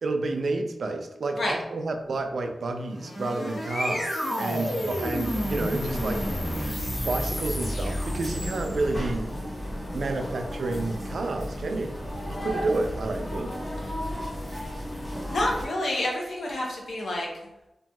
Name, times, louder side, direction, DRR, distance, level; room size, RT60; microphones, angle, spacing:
voice 1, 0.0-6.3 7.1-9.3 9.9-13.5, right 2 dB, 65° right, 5 dB, 0.3 m, -30 dB
sound 1, 2.8-9.1, equal, 50° left, 0.9 m, -30 dB
sound 2, 6.2-15.7, equal, 20° left, 0.7 m, -34 dB
voice 2, 15.3-17.3, left 1 dB, 70° left, -2 dB, 0.7 m, -28 dB
2.9 x 2.6 x 2.2 m, 0.92 s
wide cardioid pair, 140°, 0 cm